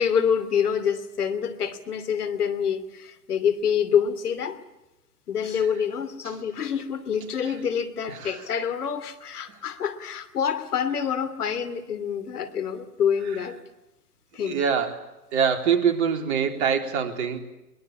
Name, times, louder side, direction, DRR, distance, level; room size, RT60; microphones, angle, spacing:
voice 1, 0.0-4.6 5.3-13.6 14.3-14.6, left 7 dB, 65° left, 12 dB, 2.9 m, -26 dB
voice 2, 8.1-8.4 14.4-15.0 15.3-17.4, right 7 dB, 45° right, 4 dB, 3.8 m, -24 dB
23.0 x 22.5 x 8.6 m, 0.96 s
figure-of-eight pair, 120°, 48 cm